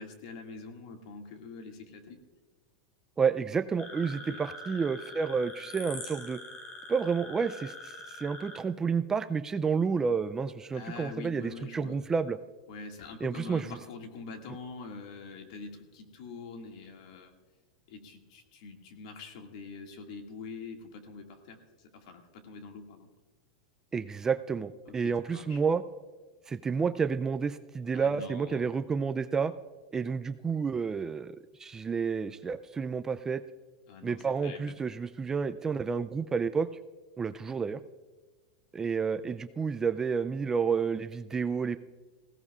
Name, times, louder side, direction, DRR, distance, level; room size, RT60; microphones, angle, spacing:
voice 1, 0.0-2.2 4.1-4.4 10.7-12.0 12.7-17.3 17.9-23.1 24.9-25.6 27.9-28.7 33.9-34.7, left 4 dB, 65° left, 3 dB, 2.1 m, -45 dB
voice 2, 3.2-6.4 6.9-12.4 13.2-13.8 23.9-25.8 26.5-29.5 29.9-31.3 31.6-33.4 34.0-36.7 37.2-37.8 38.7-41.8, right 5 dB, 15° right, 10 dB, 0.3 m, -30 dB
sound 1, 3.8-8.6, left 2 dB, 40° left, 3.3 m, -44 dB
20.0 x 16.5 x 2.4 m, 1.3 s
supercardioid pair, 145°, 4 cm